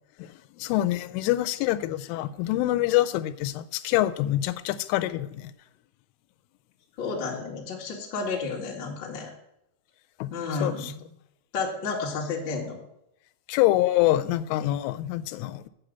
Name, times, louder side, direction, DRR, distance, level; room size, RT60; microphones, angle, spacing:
voice 1, 0.2-5.5 10.2-10.3 10.6-10.9 13.5-15.7, left 15 dB, 90° left, 12 dB, 3.1 m, -26 dB
voice 2, 7.0-9.3 10.3-11.0 11.5-12.8, left 4 dB, 45° left, -2 dB, 1.5 m, -31 dB
8.1 x 6.4 x 8.0 m, 0.80 s
omnidirectional pair, 5.5 m